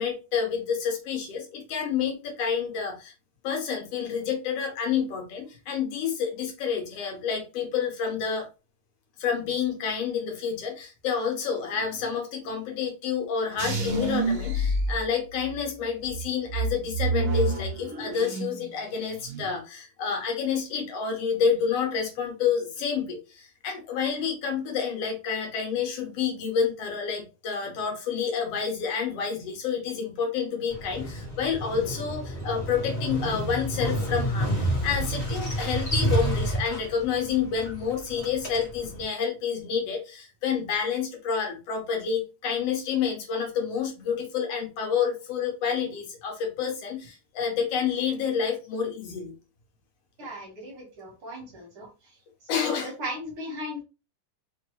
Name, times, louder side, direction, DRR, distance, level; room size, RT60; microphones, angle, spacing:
voice 1, 0.0-3.1 3.4-8.5 9.2-49.4 52.5-52.9, left 6 dB, 60° left, 2 dB, 1.8 m, -29 dB
sound 1, 13.6-15.6 16.1-18.7 19.0-19.5, right 2 dB, 85° right, 1.2 m, -28 dB
Motorcycle, 30.7-39.0, right 1 dB, 35° left, 1.1 m, -30 dB
voice 2, 50.2-52.2 52.5-53.8, left 1 dB, 55° right, -1 dB, 1.8 m, -37 dB
4.7 x 3.0 x 3.1 m, 0.30 s
omnidirectional pair, 3.7 m